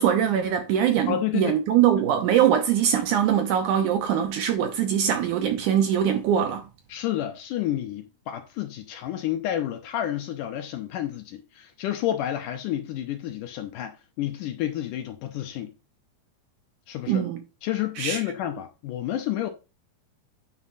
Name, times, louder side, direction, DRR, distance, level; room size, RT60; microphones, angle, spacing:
voice 1, 0.0-6.6 17.1-17.4 18.0-18.2, right 9 dB, 75° right, 2.0 m, -22 dB
voice 2, 1.1-1.5 6.9-15.7 16.9-17.2 17.6-19.5, left 12 dB, 75° left, 2.1 m, -30 dB
9.4 x 3.6 x 5.6 m
omnidirectional pair, 4.3 m